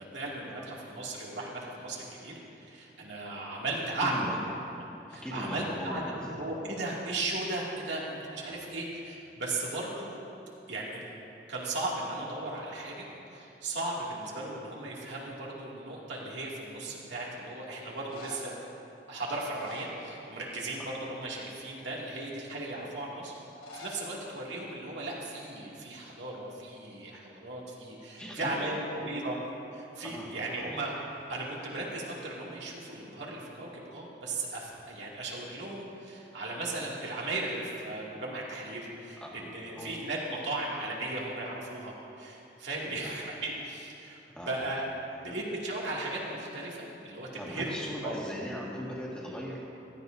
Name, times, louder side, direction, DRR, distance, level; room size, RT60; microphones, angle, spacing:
voice 1, 0.0-2.3 2.6-4.1 5.1-10.2 10.7-11.1 11.5-18.5 19.1-23.3 23.7-29.4 29.7-30.9 31.3-44.2 44.5-44.8 45.2-47.7 48.0-48.1, right 2 dB, 85° right, -4 dB, 2.3 m, -36 dB
voice 2, 4.0-4.4 5.2-6.3 28.2-28.6 30.0-30.3 30.6-30.7 39.2-39.9 42.8-43.1 44.3-44.6 45.2-45.4 47.4-49.6, equal, 5° left, -5 dB, 1.8 m, -39 dB
sound 1, 16.4-16.9 17.9-18.7 19.3-20.6 20.8-21.2 21.8-21.9 23.5-24.1 24.3-24.4 24.6-24.7 25.5-25.7 26.0-27.2 31.1-31.8, left 1 dB, 75° left, 2.6 m, -49 dB
16.0 x 14.0 x 2.7 m, 2.8 s
head